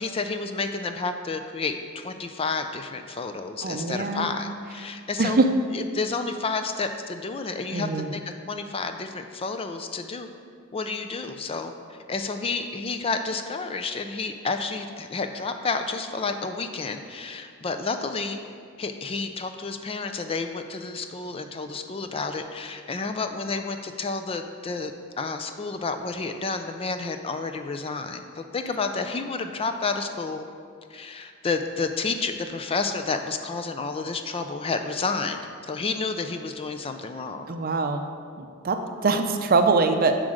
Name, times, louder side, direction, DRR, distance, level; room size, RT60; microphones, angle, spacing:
voice 1, 0.0-5.5 5.7-10.3 10.7-18.4 18.8-30.5 30.9-35.4 35.7-37.6, left 4 dB, 25° left, 7 dB, 0.4 m, -30 dB
voice 2, 3.6-4.3 5.2-5.5 7.7-8.1 37.5-38.0 38.4-40.2, right 3 dB, 45° right, 6 dB, 0.6 m, -23 dB
7.6 x 4.9 x 6.4 m, 2.2 s
head